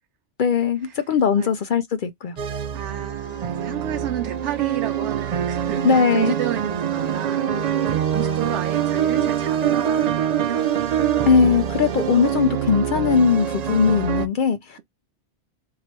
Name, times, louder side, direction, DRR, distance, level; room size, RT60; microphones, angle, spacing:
voice 1, 0.4-2.4 5.8-6.3 11.3-14.8, left 6 dB, 60° left, 0.6 m, -19 dB
sound 1, 2.4-14.3, right 9 dB, 55° right, 0.4 m, -24 dB
voice 2, 2.7-10.7, right 11 dB, 85° right, 0.9 m, -32 dB
3.1 x 2.8 x 4.3 m
omnidirectional pair, 1.2 m